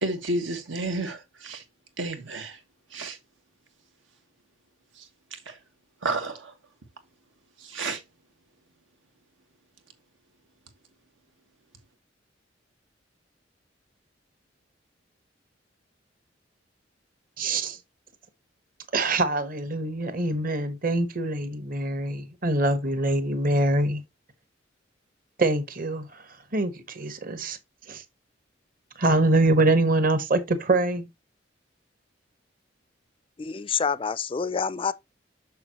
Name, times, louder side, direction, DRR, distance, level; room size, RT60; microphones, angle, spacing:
voice 1, 0.0-1.6 2.0-2.6 2.9-3.2 4.9-5.6 6.0-6.5 7.6-8.0, right 2 dB, 90° right, 1.6 m, -31 dB
voice 2, 17.4-17.8 18.9-24.0 25.4-26.1 26.5-27.6 27.9-28.0 29.0-31.1, right 2 dB, 45° right, 1.1 m, -24 dB
voice 3, 33.4-34.9, left 6 dB, 30° left, 0.4 m, -27 dB
6.9 x 6.3 x 2.9 m
head